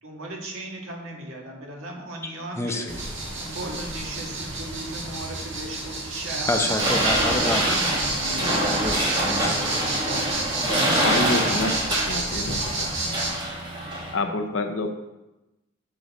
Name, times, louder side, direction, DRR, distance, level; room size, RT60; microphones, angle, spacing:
voice 1, 0.0-2.9 3.4-6.8 7.2-8.8 9.5-10.0, right 1 dB, 80° right, 0 dB, 1.6 m, -37 dB
voice 2, 2.6-2.9 6.5-7.6 8.7-9.6 10.8-11.1, left 2 dB, 15° left, 4 dB, 0.6 m, -28 dB
sound 1, 2.9-13.3, right 2 dB, 60° right, 1.7 m, -30 dB
sound 2, 6.8-14.1, right 1 dB, 20° right, 1.4 m, -25 dB
voice 3, 11.0-12.9 14.1-14.9, left 2 dB, 65° left, 6 dB, 0.7 m, -28 dB
6.7 x 6.2 x 4.1 m, 0.99 s
head